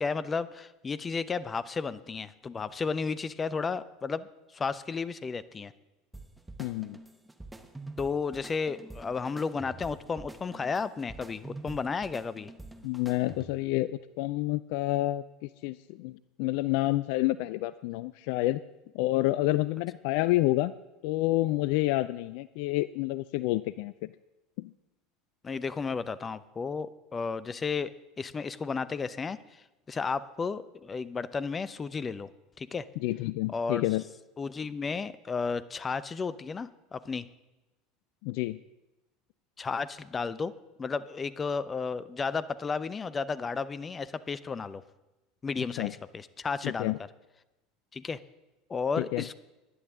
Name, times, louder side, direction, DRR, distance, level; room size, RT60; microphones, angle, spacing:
voice 1, 0.0-4.3 4.5-5.7 8.0-12.5 25.4-27.9 28.2-29.4 29.9-32.3 32.6-32.8 33.5-33.8 34.4-37.3 39.6-40.5 40.8-44.8 45.4-46.9 47.9-48.2 48.7-49.4, left 5 dB, 25° left, 16 dB, 0.7 m, -33 dB
sound 1, 6.1-13.7, right 2 dB, 5° right, 1.2 m, -46 dB
voice 2, 6.6-7.0 12.8-18.6 18.9-20.7 21.0-23.9 24.6-24.7 33.0-34.0 38.2-38.6 45.8-45.9 46.6-47.0 49.0-49.2, left 17 dB, 60° left, 17 dB, 0.3 m, -29 dB
19.5 x 11.0 x 3.7 m, 1.0 s
figure-of-eight pair, 75°, 0 cm